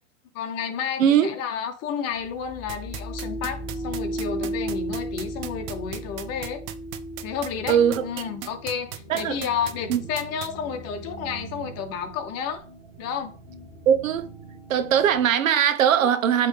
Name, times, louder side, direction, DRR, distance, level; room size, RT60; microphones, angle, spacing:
voice 1, 0.3-6.6 7.2-12.6 13.0-13.3, left 7 dB, 40° left, 1.2 m, -31 dB
voice 2, 1.0-1.3 7.7-8.0 9.1-9.4 9.9-10.0 13.9-14.3 14.7-16.5, right 9 dB, 85° right, 0.9 m, -20 dB
sound 1, 2.1-15.3, right 1 dB, 10° left, 2.3 m, -37 dB
sound 2, 2.7-10.5, right 13 dB, 45° right, 0.8 m, -36 dB
8.4 x 3.4 x 3.5 m
hypercardioid pair, 115°, 39 cm